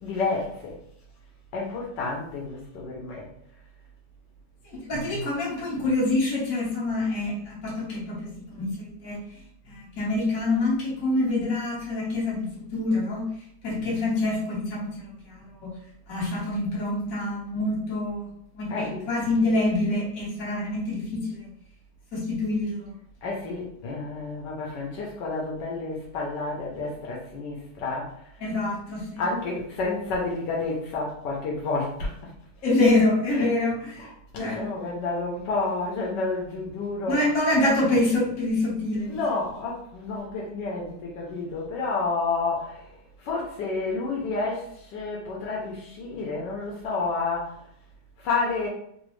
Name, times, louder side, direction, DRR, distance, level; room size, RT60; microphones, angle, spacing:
voice 1, 0.0-0.8 1.5-3.3 18.7-19.1 23.2-28.1 29.2-32.3 33.3-33.5 34.0-37.2 39.1-42.9 43.2-47.6 48.2-48.7, left 3 dB, 80° left, -3 dB, 1.3 m, -30 dB
voice 2, 4.7-9.2 9.7-13.2 13.6-15.7 16.1-18.2 18.5-21.5 22.1-22.9 28.4-29.2 32.6-34.1 34.4-34.6 37.1-39.2, left 2 dB, 55° left, -5 dB, 1.5 m, -26 dB
3.9 x 2.0 x 3.1 m, 0.71 s
omnidirectional pair, 1.9 m